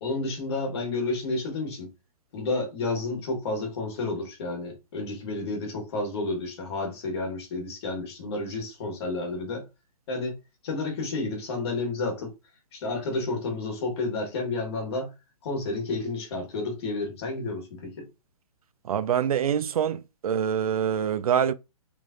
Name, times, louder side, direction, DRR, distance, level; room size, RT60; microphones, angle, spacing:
voice 1, 0.0-1.9 2.3-9.7 10.1-10.4 10.6-12.3 12.7-15.1 15.4-18.1, left 3 dB, 45° left, 1.6 m, -31 dB
voice 2, 18.8-21.5, right 8 dB, 70° right, 0.4 m, -25 dB
3.4 x 3.1 x 2.3 m
hypercardioid pair, 150°, 19 cm